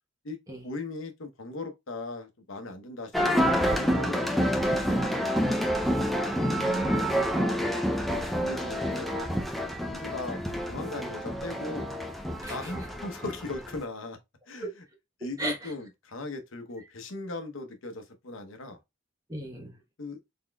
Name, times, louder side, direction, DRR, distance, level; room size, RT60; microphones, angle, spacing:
voice 1, 0.2-5.7 8.4-9.1 9.8-10.4 10.7-11.9 12.4-14.2 14.5-14.7 15.2-18.8 20.0-20.2, left 2 dB, 85° left, 0.9 m, -38 dB
sound 1, 3.1-13.8, equal, ahead, 0.4 m, -28 dB
voice 2, 6.2-7.3 8.9-9.1 12.4-12.7 14.6-14.7 15.4-15.7 19.3-19.8, right 1 dB, 20° right, 1.0 m, -36 dB
3.9 x 3.7 x 2.2 m
head